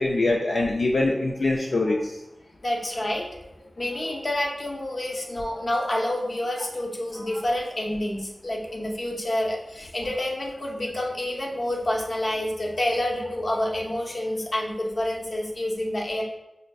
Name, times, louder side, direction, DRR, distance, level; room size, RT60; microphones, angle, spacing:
voice 1, 0.0-2.1, left 2 dB, 80° left, -1 dB, 0.3 m, -23 dB
voice 2, 2.6-3.4 3.8-16.2, left 1 dB, 50° left, -1 dB, 0.6 m, -28 dB
4.9 x 2.5 x 2.2 m, 0.93 s
wide cardioid pair, 85°, 0 cm